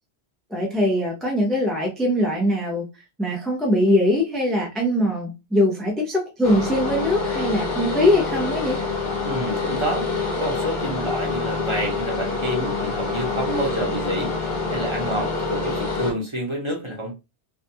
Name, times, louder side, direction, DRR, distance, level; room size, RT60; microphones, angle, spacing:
voice 1, 0.5-8.8, left 1 dB, ahead, 0.3 m, -22 dB
sound 1, 6.4-16.1, left 4 dB, 45° left, 0.9 m, -26 dB
voice 2, 9.2-10.1 10.4-17.1, right 1 dB, 30° right, 0.7 m, -29 dB
2.4 x 2.2 x 2.7 m
omnidirectional pair, 1.1 m